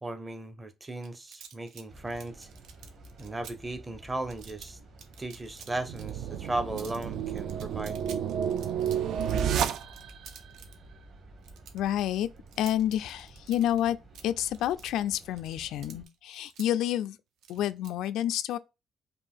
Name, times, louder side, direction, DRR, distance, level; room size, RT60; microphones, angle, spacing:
voice 1, 0.0-2.5 3.2-4.8 5.2-8.0, right 2 dB, 15° right, 0.6 m, -36 dB
sound 1, 1.0-3.5 4.3-4.7 5.0-6.1 6.4-6.5 6.8-10.7 11.4-13.8 14.1-16.7 17.4-17.9, right 7 dB, 80° right, 0.8 m, -50 dB
sound 2, 1.9-16.0, right 2 dB, 45° right, 1.5 m, -51 dB
sound 3, 5.7-10.3, right 9 dB, 60° right, 0.4 m, -31 dB
voice 2, 11.7-12.3 12.6-14.0 14.2-17.2 17.5-18.6, left 11 dB, 90° left, 0.3 m, -29 dB
5.2 x 2.5 x 3.5 m
cardioid pair, 170°, 0 cm